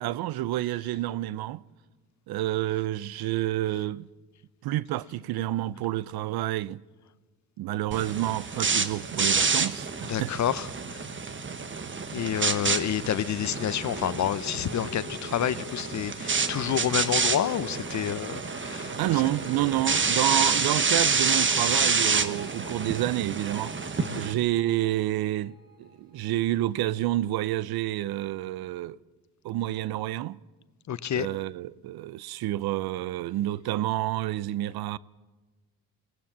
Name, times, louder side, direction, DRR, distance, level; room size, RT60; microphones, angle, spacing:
voice 1, 0.0-1.6 2.3-4.1 4.6-6.8 7.6-10.3 19.0-23.8 24.1-29.0 29.4-30.4 31.2-35.0, right 15 dB, 75° right, 0.6 m, -29 dB
sound 1, 7.9-24.3, right 5 dB, 30° right, 1.3 m, -28 dB
voice 2, 10.1-11.0 12.1-19.2 24.0-24.2 30.9-31.3, left 10 dB, 50° left, 0.8 m, -29 dB
sound 2, 13.4-26.7 27.0-27.3, left 2 dB, 55° right, 5.8 m, -45 dB
21.5 x 17.0 x 7.4 m
cardioid pair, 80°, 38 cm